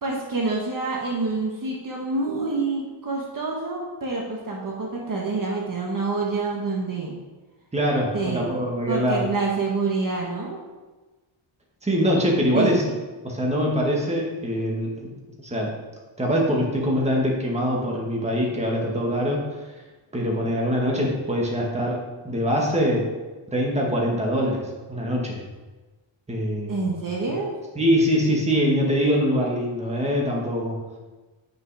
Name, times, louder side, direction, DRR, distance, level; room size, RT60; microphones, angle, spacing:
voice 1, 0.0-7.2 8.1-8.5 8.9-10.6 12.5-12.7 26.7-27.6, right 3 dB, 45° right, -2 dB, 1.4 m, -27 dB
voice 2, 7.7-9.2 11.8-12.8 13.2-15.1 15.4-15.7 16.2-19.4 20.1-22.0 22.2-23.1 23.5-25.4 26.3-26.8 27.8-30.8, equal, 15° right, -2 dB, 1.8 m, -23 dB
9.3 x 6.2 x 4.9 m, 1.2 s
wide cardioid pair, 160°, 47 cm